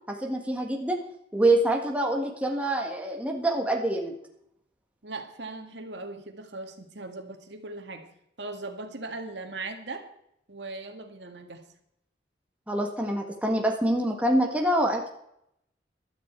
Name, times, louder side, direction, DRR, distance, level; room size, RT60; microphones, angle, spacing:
voice 1, 0.1-1.0 1.3-4.1 12.7-15.1, right 1 dB, 5° right, 1 dB, 1.6 m, -25 dB
voice 2, 5.0-8.1 8.4-10.1 10.5-11.7, right 3 dB, 75° right, 5 dB, 1.9 m, -39 dB
15.0 x 12.5 x 4.6 m, 0.75 s
head